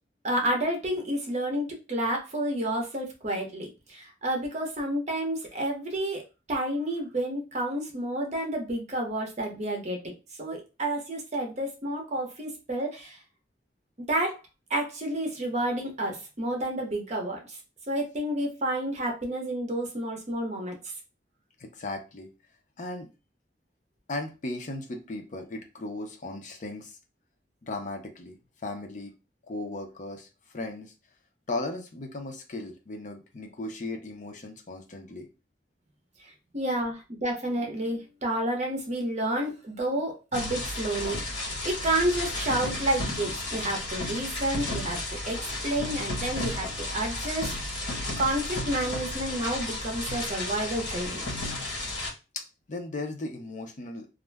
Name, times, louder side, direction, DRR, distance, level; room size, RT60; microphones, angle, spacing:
voice 1, 0.2-6.2 6.5-10.1 10.4-13.2 14.1-14.4 14.7-17.6 17.9-20.8 36.5-45.0 45.3-45.4 45.6-47.6 48.2-51.2, right 1 dB, 40° right, 2 dB, 0.8 m, -30 dB
voice 2, 21.6-22.3 22.8-23.1 24.1-27.0 27.6-28.4 28.6-29.1 29.5-30.3 30.5-30.9 31.5-35.3 52.3-52.4 52.7-54.1, left 2 dB, 45° left, 4 dB, 0.6 m, -36 dB
sound 1, 40.3-52.1, left 2 dB, 80° left, 1.3 m, -33 dB
2.4 x 2.1 x 3.3 m, 0.29 s
head